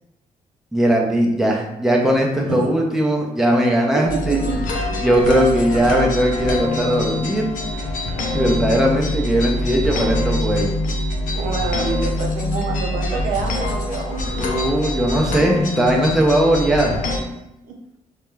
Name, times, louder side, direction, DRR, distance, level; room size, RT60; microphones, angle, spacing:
voice 1, 0.7-4.4 5.0-7.5 8.3-10.7 14.4-17.0, right 1 dB, 5° right, -1 dB, 0.5 m, -19 dB
voice 2, 3.9-4.6 11.4-14.3 17.6-17.8, right 4 dB, 85° right, 1 dB, 0.5 m, -27 dB
sound 1, 4.0-17.2, left 1 dB, 75° left, 0.5 m, -24 dB
2.3 x 2.1 x 3.1 m, 0.88 s
cardioid pair, 80°, 14 cm